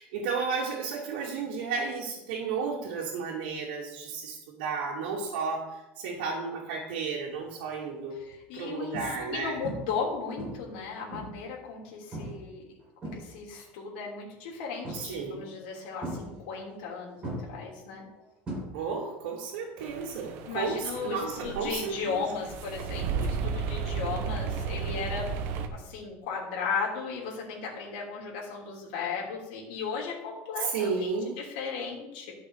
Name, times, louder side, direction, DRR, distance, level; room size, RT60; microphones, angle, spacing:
voice 1, 0.0-8.2 8.5-9.6 14.9-15.5 18.7-22.2 30.6-31.4, right 5 dB, 80° right, -3 dB, 2.3 m, -33 dB
sound 1, 7.3-7.6 8.2-8.3 8.9-9.4 9.6-10.0 10.4-11.5 12.1-12.5 12.8-13.6 14.8-15.4 16.0-16.9 17.2-19.1 19.4-19.8 21.9-22.0, right 1 dB, 20° right, 4.2 m, -39 dB
voice 2, 8.3-12.6 13.0-18.0 20.5-32.3, left 5 dB, 75° left, -2 dB, 3.1 m, -36 dB
sound 2, 19.8-25.7, right 6 dB, 50° right, 1.0 m, -34 dB
12.0 x 6.0 x 4.7 m, 0.98 s
cardioid pair, 165°, 5 cm